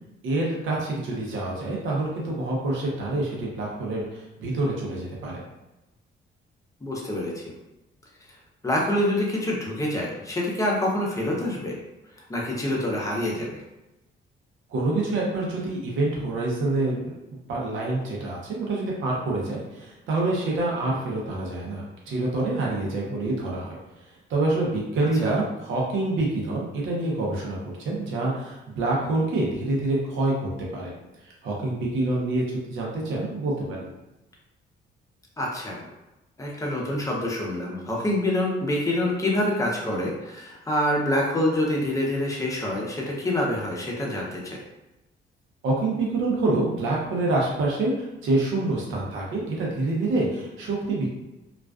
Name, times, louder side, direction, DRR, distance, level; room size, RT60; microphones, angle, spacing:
voice 1, 0.2-5.4 14.7-17.1 17.5-23.8 24.3-30.9 31.4-33.9 45.6-51.1, right 2 dB, 75° right, -3 dB, 0.7 m, -26 dB
voice 2, 6.8-7.5 8.6-11.7 12.3-13.5 25.2-25.3 35.4-35.8 36.4-44.6, left 1 dB, 15° left, -3 dB, 0.7 m, -26 dB
2.4 x 2.3 x 2.3 m, 0.98 s
cardioid pair, 90°, 20 cm